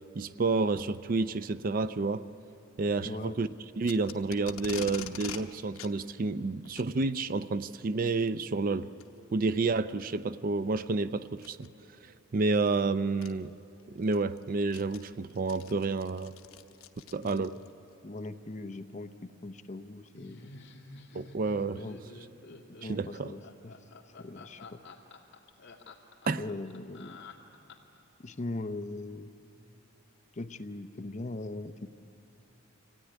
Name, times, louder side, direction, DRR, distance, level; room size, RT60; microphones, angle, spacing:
voice 1, 0.2-2.2 2.8-3.5 3.8-8.9 9.3-11.7 12.3-13.5 14.0-16.3 17.1-17.6 21.1-21.8 22.9-23.3 26.3-26.4, right 3 dB, 40° right, 13 dB, 0.4 m, -30 dB
voice 2, 3.0-3.4 17.2-17.5 18.0-20.5 21.7-22.0 22.5-23.7 24.2-24.8 26.4-27.2 28.2-29.3 30.3-31.9, left 2 dB, 35° left, 9 dB, 0.7 m, -40 dB
Packing tape duct tape, 3.8-5.4 5.8-5.9 6.6-6.9 8.1-8.3 9.0-9.1 9.7-9.8 11.4-11.7 12.7-12.8 13.2-13.3 13.8-17.7, left 7 dB, 85° left, 0.9 m, -44 dB
Laughter, 20.1-28.0, left 3 dB, 55° left, 2.1 m, -50 dB
24.5 x 16.5 x 9.8 m, 2.9 s
head